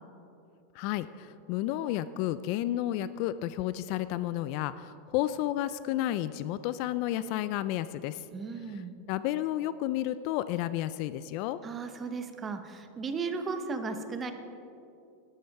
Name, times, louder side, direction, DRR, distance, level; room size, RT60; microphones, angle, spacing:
voice 1, 0.8-8.2 9.1-11.6, left 13 dB, 40° left, 14 dB, 0.3 m, -31 dB
voice 2, 8.3-8.9 11.6-14.3, right 4 dB, 15° right, 8 dB, 0.7 m, -35 dB
12.5 x 12.0 x 4.7 m, 2.7 s
supercardioid pair, 170°, 0 cm